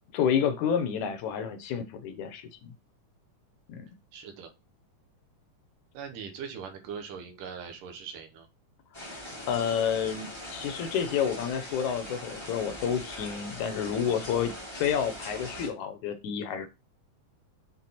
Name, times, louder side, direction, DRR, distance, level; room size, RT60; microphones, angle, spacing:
voice 1, 0.1-2.7 3.7-3.9 9.5-16.7, left 8 dB, 75° left, 2.1 m, -29 dB
voice 2, 4.1-4.5 5.9-8.5, right 6 dB, 85° right, 2.8 m, -41 dB
sound 1, 8.9-15.7, left 1 dB, 25° left, 0.5 m, -41 dB
7.6 x 3.8 x 4.2 m
omnidirectional pair, 3.7 m